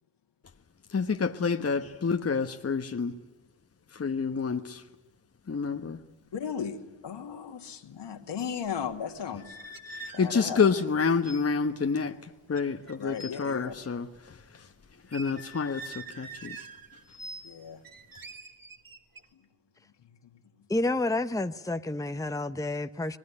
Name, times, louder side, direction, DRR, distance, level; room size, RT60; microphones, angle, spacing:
voice 1, 0.9-3.1 3.9-4.8 5.5-6.0 9.9-14.7 15.1-16.6, left 5 dB, 30° left, 1.3 m, -28 dB
voice 2, 6.3-9.6 10.1-10.7 13.0-13.7 17.4-17.8 19.3-19.4 20.0-20.4, left 7 dB, 60° left, 2.3 m, -36 dB
sound 1, 9.3-10.9 11.2-11.4 11.7-11.9 12.5-13.3 15.1-17.6 17.8-19.2, right 2 dB, 45° right, 2.8 m, -44 dB
voice 3, 20.7-23.2, left 2 dB, 5° left, 1.1 m, -29 dB
26.0 x 19.5 x 9.9 m
hypercardioid pair, 40°, 47 cm